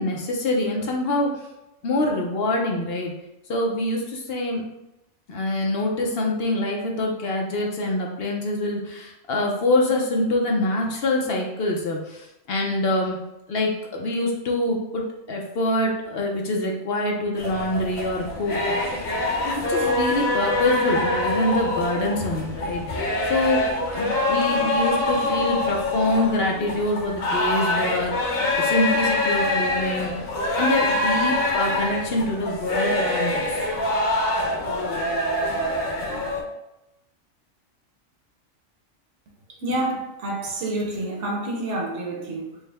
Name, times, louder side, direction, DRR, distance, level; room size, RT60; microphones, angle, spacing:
voice 1, 0.0-1.5 1.8-3.1 3.5-4.6 5.3-13.2 13.5-19.0 19.4-30.1 30.6-33.6, left 1 dB, 55° left, 0 dB, 0.8 m, -25 dB
sound 1, 17.4-36.4, left 1 dB, 85° left, 1.2 m, -25 dB
voice 2, 39.5-42.6, right 1 dB, 65° right, -1 dB, 1.2 m, -28 dB
4.8 x 2.1 x 3.3 m, 0.90 s
omnidirectional pair, 1.4 m